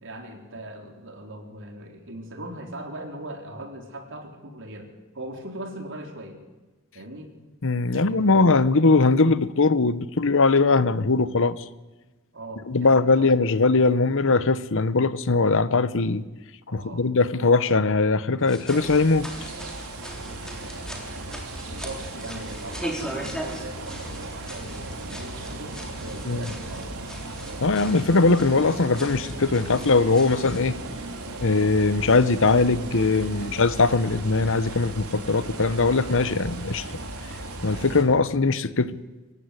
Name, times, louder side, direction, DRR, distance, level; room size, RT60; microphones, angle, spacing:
voice 1, 0.0-6.4 6.9-7.3 7.8-8.7 12.3-13.6 16.7-17.1 21.7-26.9, right 1 dB, 60° right, 3.9 m, -40 dB
voice 2, 7.6-11.6 12.7-16.2 16.7-19.3 26.2-26.4 27.6-30.8 31.4-36.9 37.6-38.9, left 3 dB, 65° left, 1.0 m, -21 dB
sound 1, 18.4-30.7, equal, 5° left, 3.9 m, -40 dB
sound 2, 18.7-38.0, right 2 dB, 90° right, 3.7 m, -36 dB
24.5 x 15.5 x 9.8 m
head